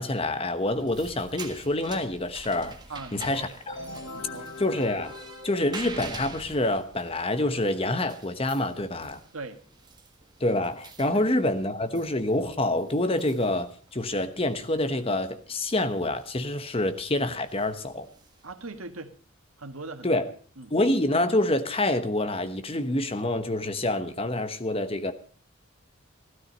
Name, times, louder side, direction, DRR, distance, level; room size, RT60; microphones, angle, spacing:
voice 1, 0.0-2.8 3.1-3.7 4.6-5.1 5.4-9.2 10.4-18.1 20.0-20.3 20.7-25.1, left 1 dB, 25° left, 10 dB, 1.1 m, -27 dB
sound 1, 0.6-18.8, right 3 dB, 20° right, 1.6 m, -47 dB
voice 2, 2.9-3.4 4.1-4.5 9.3-9.6 11.1-11.3 18.4-19.2 19.6-20.2 20.6-20.7, right 3 dB, 85° right, 8 dB, 1.7 m, -40 dB
sound 2, 3.7-6.4, left 2 dB, 60° left, 1.6 m, -42 dB
15.5 x 13.0 x 5.3 m, 0.43 s
head